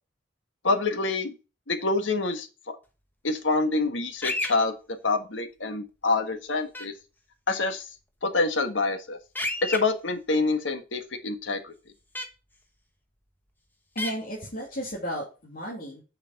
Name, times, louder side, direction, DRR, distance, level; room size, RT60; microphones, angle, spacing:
voice 1, 0.6-1.3 1.7-2.8 3.2-4.7 5.0-6.9 7.5-7.8 8.2-9.2 9.6-11.7, left 3 dB, 85° left, 6 dB, 1.6 m, -26 dB
sound 1, 4.2-4.5 6.7-6.9 9.4-9.8 12.2-12.3 14.0-14.1, left 1 dB, 10° left, 1.3 m, -29 dB
voice 2, 13.9-16.0, equal, 50° left, -4 dB, 2.7 m, -34 dB
7.5 x 5.9 x 5.4 m, 0.31 s
head